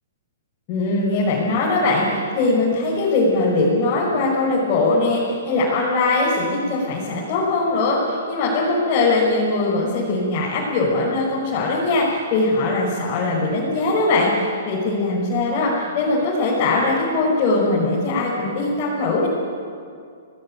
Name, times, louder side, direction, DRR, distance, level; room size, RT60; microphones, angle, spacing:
voice 1, 0.7-19.3, left 2 dB, 30° left, -6 dB, 6.1 m, -21 dB
29.0 x 19.0 x 9.3 m, 2.3 s
hypercardioid pair, 160°, 0 cm